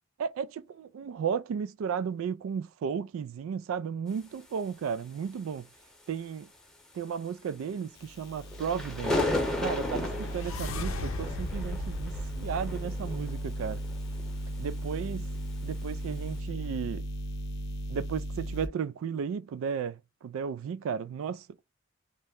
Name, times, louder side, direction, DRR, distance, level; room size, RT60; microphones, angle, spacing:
voice 1, 0.2-5.7 6.1-6.5 6.9-9.3 9.6-13.8 14.6-15.3 15.6-17.1 17.9-21.5, right 7 dB, 85° right, 0.3 m, -34 dB
sound 1, 8.0-18.7, right 1 dB, 50° left, 0.7 m, -36 dB
sound 2, 8.4-14.9 15.2-15.5 16.1-16.4, left 1 dB, 5° left, 0.7 m, -34 dB
sound 3, 9.6-13.6, left 2 dB, 80° left, 0.5 m, -39 dB
2.8 x 2.1 x 3.4 m
head